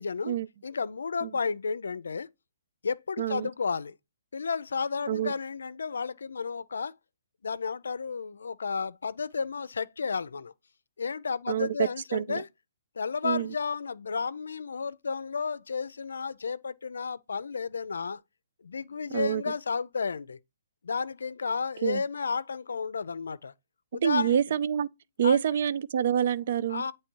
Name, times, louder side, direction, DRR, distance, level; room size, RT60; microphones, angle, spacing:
voice 1, 0.0-0.4 0.6-2.3 2.8-4.0 4.3-6.9 7.4-10.5 11.0-12.5 13.0-18.2 18.6-20.4 20.8-23.5 23.9-24.4 25.2-25.4 26.7-26.9, left 5 dB, 85° left, 0.5 m, -32 dB
voice 2, 3.2-3.5 5.1-5.3 11.5-11.7 12.1-12.4 13.2-13.5 19.1-19.4 21.8-22.0 24.0-24.9 25.2-26.8, right 9 dB, 50° right, 0.4 m, -27 dB
8.4 x 3.1 x 4.5 m
hypercardioid pair, 155°, 0 cm